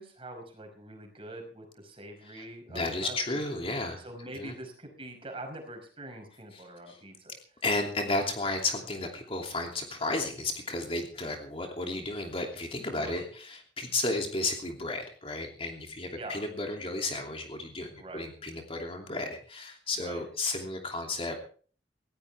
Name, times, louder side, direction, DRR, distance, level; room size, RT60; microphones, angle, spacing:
voice 1, 0.0-3.4 4.0-7.3 12.9-13.3 16.2-16.4 18.0-18.3 20.0-20.3, right 1 dB, 35° right, 4 dB, 5.3 m, -44 dB
voice 2, 2.2-4.0 4.3-4.5 6.5-7.0 7.6-21.4, left 2 dB, 35° left, 2 dB, 2.9 m, -33 dB
19.5 x 15.5 x 3.6 m, 0.42 s
head